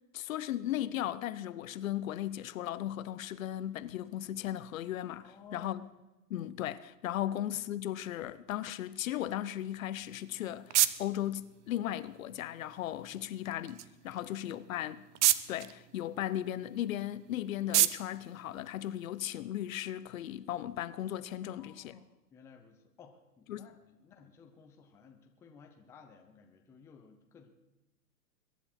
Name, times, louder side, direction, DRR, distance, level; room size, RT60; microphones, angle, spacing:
voice 1, 0.1-5.3 5.5-5.8 6.3-15.0 15.5-22.0 23.5-23.7, left 12 dB, 55° left, 0.8 m, -36 dB
voice 2, 5.2-5.9 7.2-7.3 7.7-7.8 13.1-13.2 14.2-14.6 21.4-22.0 22.3-27.5, left 5 dB, 5° left, 0.6 m, -56 dB
sound 1, 9.9-19.4, right 13 dB, 45° right, 0.7 m, -34 dB
22.5 x 10.5 x 4.4 m
hypercardioid pair, 145°, 49 cm